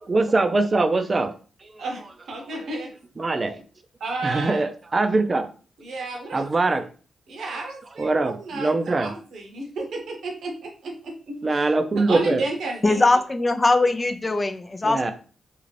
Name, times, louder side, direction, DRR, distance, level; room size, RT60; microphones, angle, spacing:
voice 1, 0.0-1.3 1.6-1.8 3.2-3.6 4.2-5.5 6.3-6.9 8.0-9.1 11.4-12.4 14.8-15.1, right 3 dB, 40° right, 0.5 m, -22 dB
voice 2, 2.3-2.9 4.0-4.6 5.8-6.8 7.3-11.7 11.9-13.0, right 2 dB, 70° right, 0.8 m, -32 dB
voice 3, 12.8-15.1, left 2 dB, 30° left, 0.4 m, -21 dB
2.5 x 2.4 x 3.2 m
supercardioid pair, 45°, 0 cm